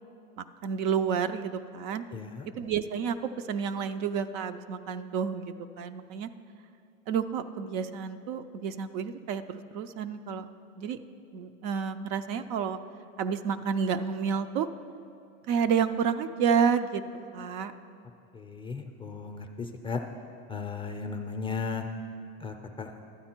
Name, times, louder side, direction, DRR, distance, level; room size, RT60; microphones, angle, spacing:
voice 1, 0.4-2.0 2.6-6.3 7.1-10.5 10.8-11.0 11.3-12.8 13.2-14.7 15.5-17.0 17.3-17.7, right 7 dB, 55° right, 10 dB, 0.5 m, -30 dB
voice 2, 2.1-2.5 18.3-20.0 20.5-21.8 22.4-22.9, left 5 dB, 15° left, 4 dB, 0.4 m, -36 dB
12.0 x 8.7 x 4.4 m, 2.5 s
supercardioid pair, 125°, 40 cm